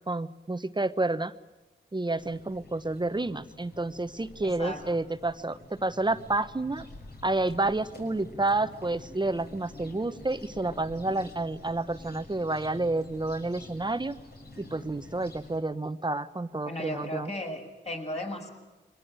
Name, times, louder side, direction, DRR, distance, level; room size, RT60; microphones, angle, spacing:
voice 1, 0.1-1.3 1.9-6.9 7.2-14.2 14.6-17.3, right 2 dB, 25° right, 12 dB, 1.1 m, -30 dB
sound 1, 2.2-15.6, left 2 dB, 55° left, 6.3 m, -48 dB
voice 2, 4.4-4.8 16.6-18.5, left 1 dB, 35° left, 2 dB, 6.6 m, -35 dB
23.0 x 18.5 x 9.0 m, 1.1 s
cardioid pair, 45°, 19 cm